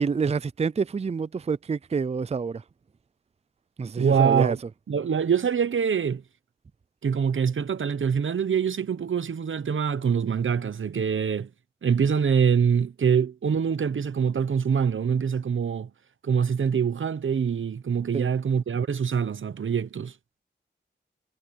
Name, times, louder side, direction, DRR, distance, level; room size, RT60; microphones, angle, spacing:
voice 1, 0.0-2.6 3.8-4.6 18.1-18.3, right 5 dB, 30° right, 0.4 m, -27 dB
voice 2, 4.0-4.6 4.9-6.2 7.0-11.5 11.8-15.9 16.2-20.1, right 7 dB, 85° right, 0.8 m, -24 dB
wide cardioid pair, 90°, 20 cm